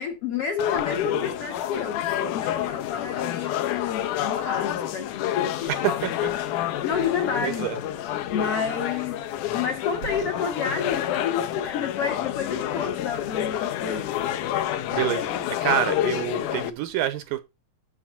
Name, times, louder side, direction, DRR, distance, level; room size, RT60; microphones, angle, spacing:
voice 1, 0.0-5.9 6.8-7.7 8.3-9.2 9.5-14.1, left 6 dB, 50° left, 2.2 m, -30 dB
sound 1, 0.6-16.7, left 12 dB, 75° left, 2.0 m, -28 dB
voice 2, 5.7-6.3 7.4-7.8 14.9-15.3 15.6-17.4, right 12 dB, 80° right, 2.3 m, -27 dB
7.4 x 7.1 x 5.5 m
omnidirectional pair, 4.3 m